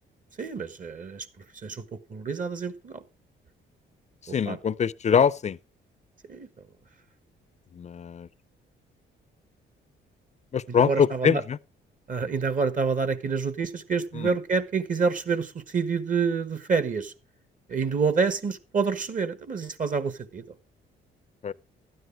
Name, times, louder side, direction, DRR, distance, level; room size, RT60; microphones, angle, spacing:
voice 1, 0.4-1.3 1.6-3.0 4.4-4.6 6.3-6.5 10.7-11.4 12.1-17.1 17.7-20.4, right 5 dB, 40° right, 1.4 m, -27 dB
voice 2, 4.2-5.6 7.7-8.3 10.5-11.6 14.1-14.3 21.4-21.5, left 7 dB, 35° left, 0.5 m, -24 dB
12.5 x 9.5 x 4.7 m
cardioid pair, 90°, 20 cm